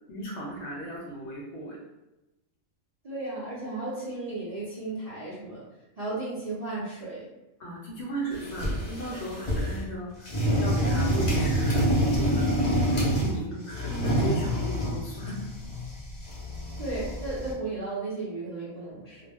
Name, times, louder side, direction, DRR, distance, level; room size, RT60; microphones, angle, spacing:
voice 1, 0.1-1.8 7.6-10.3 10.6-15.4, equal, 60° left, -3 dB, 0.8 m, -36 dB
voice 2, 3.0-5.6 6.0-7.2 16.8-19.2, right 2 dB, 50° right, -9 dB, 0.5 m, -34 dB
sound 1, 8.3-9.8 10.2-13.4 13.7-17.5, equal, 40° left, 0.5 m, -27 dB
2.4 x 2.0 x 3.4 m, 0.98 s
omnidirectional pair, 1.4 m